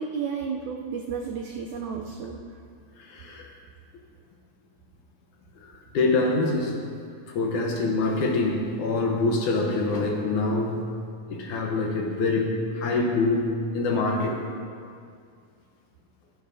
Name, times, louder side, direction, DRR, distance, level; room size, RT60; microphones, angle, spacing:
voice 1, 0.0-2.4, right 6 dB, 85° right, 2 dB, 1.7 m, -32 dB
voice 2, 3.0-3.5 5.6-6.8 7.3-10.8 11.3-14.7, left 3 dB, 70° left, 1 dB, 2.1 m, -25 dB
14.5 x 13.5 x 2.7 m, 2.3 s
omnidirectional pair, 4.2 m